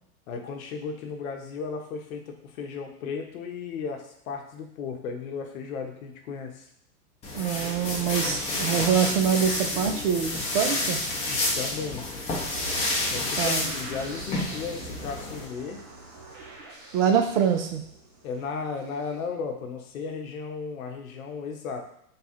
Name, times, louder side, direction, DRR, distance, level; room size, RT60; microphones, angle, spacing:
voice 1, 0.3-6.7 11.3-12.4 13.1-15.8 18.2-21.9, left 5 dB, 60° left, 3 dB, 0.9 m, -35 dB
sound 1, 7.2-15.5, left 2 dB, 15° left, 0.8 m, -30 dB
voice 2, 7.3-11.0 13.4-13.6 16.9-17.8, right 8 dB, 50° right, 5 dB, 0.8 m, -25 dB
sound 2, 12.5-19.1, right 2 dB, 20° right, 0.3 m, -43 dB
3.4 x 2.3 x 4.3 m, 0.72 s
hypercardioid pair, 120°, 47 cm